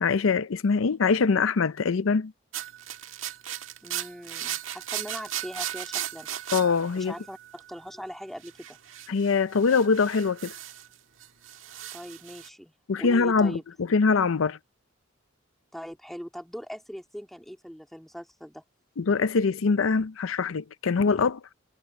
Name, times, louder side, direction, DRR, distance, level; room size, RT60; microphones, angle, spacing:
voice 1, 0.0-2.3 6.5-7.1 9.1-10.5 12.9-13.6 13.9-14.6 19.0-21.4, left 4 dB, 85° left, 0.6 m, -23 dB
sound 1, 2.5-7.8 8.4-10.9 11.2-12.5, right 12 dB, 80° right, 1.7 m, -37 dB
voice 2, 3.8-6.3 7.0-8.8 11.9-13.6 15.7-18.6, equal, ahead, 2.4 m, -40 dB
head